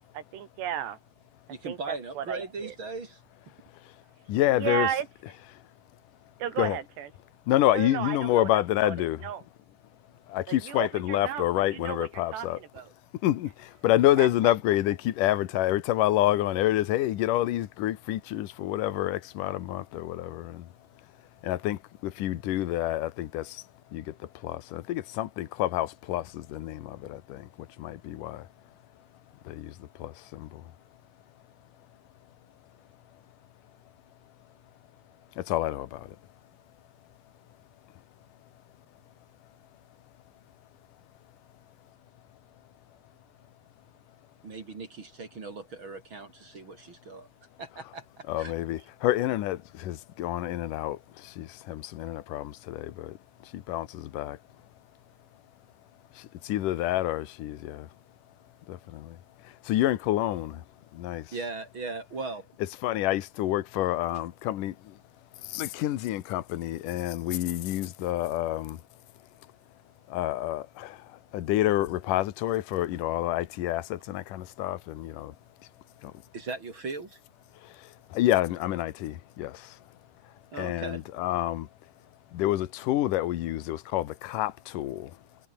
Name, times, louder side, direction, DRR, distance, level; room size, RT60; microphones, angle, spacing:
voice 1, 0.1-1.0 1.6-2.7 4.5-5.1 6.4-7.1 7.7-9.0 9.2-9.4 10.5-12.9 14.2-14.5, right 10 dB, 85° right, 4.6 m, -34 dB
voice 2, 1.5-3.2 44.4-47.3 47.6-48.5 61.3-62.5 76.3-77.2 80.5-81.0, right 3 dB, 35° right, 2.9 m, -38 dB
voice 3, 4.3-4.9 6.6-6.8 7.5-9.3 10.3-12.6 13.2-20.7 21.4-23.6 23.9-28.5 29.4-30.6 35.4-36.2 48.3-53.2 53.4-54.4 56.2-57.9 58.7-59.2 59.4-60.6 60.9-61.3 62.8-65.0 65.4-68.8 70.1-75.4 76.0-76.1 77.6-79.8 80.6-81.7 82.3-85.2, left 14 dB, 65° left, 2.4 m, -28 dB
omnidirectional pair, 4.9 m